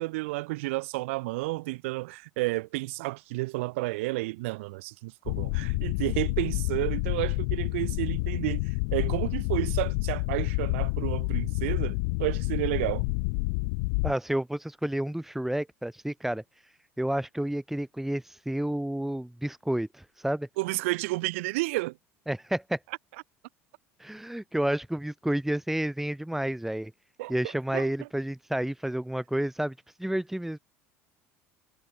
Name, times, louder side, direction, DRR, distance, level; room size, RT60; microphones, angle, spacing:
voice 1, 0.0-13.0 20.6-22.0 27.2-27.3 27.7-27.9, right 22 dB, 70° right, 1.7 m, -31 dB
sound 1, 5.3-14.1, left 33 dB, 65° left, 1.0 m, -29 dB
voice 2, 14.0-16.4 17.0-20.5 22.3-22.8 24.0-26.9 27.3-29.7 30.0-30.6, right 1 dB, 5° right, 2.2 m, -30 dB
hypercardioid pair, 70°, 7 cm